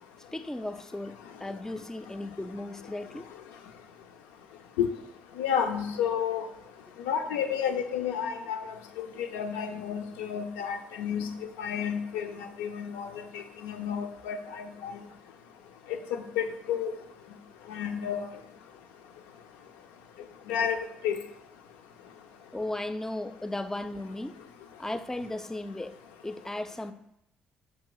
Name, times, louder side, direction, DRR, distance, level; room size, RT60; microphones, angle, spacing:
voice 1, 0.3-3.3 22.5-24.4 24.8-26.9, left 1 dB, 10° left, 11 dB, 0.3 m, -36 dB
voice 2, 5.4-6.5 7.1-8.6 9.0-13.1 13.3-14.9 15.9-16.9 17.7-18.3 20.5-21.2, left 8 dB, 80° left, 6 dB, 0.4 m, -31 dB
5.3 x 2.4 x 3.8 m, 0.78 s
hypercardioid pair, 50°, 4 cm